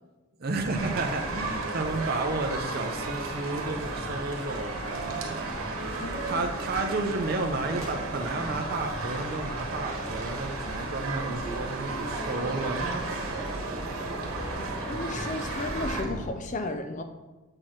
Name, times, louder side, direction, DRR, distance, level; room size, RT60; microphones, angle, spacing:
voice 1, 0.4-13.6, right 3 dB, 45° right, 4 dB, 0.5 m, -32 dB
Waves surf, 0.6-16.3, equal, 15° right, 2.1 m, -43 dB
sound 1, 0.7-16.0, right 2 dB, 75° right, 1.2 m, -34 dB
voice 2, 6.0-6.4 14.6-17.0, left 2 dB, 35° left, 8 dB, 0.5 m, -34 dB
7.6 x 4.6 x 4.3 m, 1.2 s
head